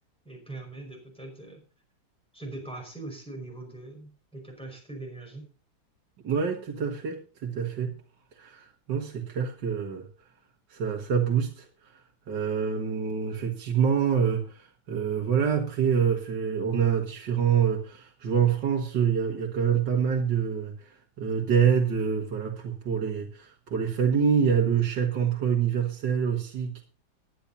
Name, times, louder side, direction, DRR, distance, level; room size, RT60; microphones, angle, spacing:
voice 1, 0.2-1.6 2.3-5.5, right 2 dB, 5° left, 1 dB, 5.1 m, -41 dB
voice 2, 6.2-8.0 8.4-10.1 10.7-12.0 12.3-26.8, right 7 dB, 65° right, 0 dB, 2.3 m, -26 dB
20.5 x 10.0 x 2.7 m, 0.36 s
omnidirectional pair, 2.1 m